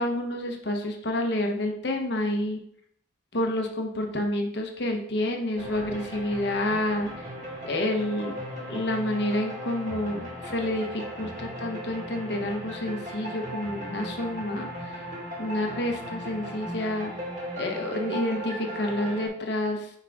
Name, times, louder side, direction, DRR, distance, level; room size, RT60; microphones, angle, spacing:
voice 1, 0.0-2.6 3.3-7.3 7.6-8.4 8.7-15.1 15.4-17.1 17.6-19.9, left 1 dB, 55° left, 2 dB, 1.1 m, -29 dB
sound 1, 5.6-19.3, equal, 40° right, 2.0 m, -37 dB
6.0 x 5.5 x 3.7 m, 0.67 s
head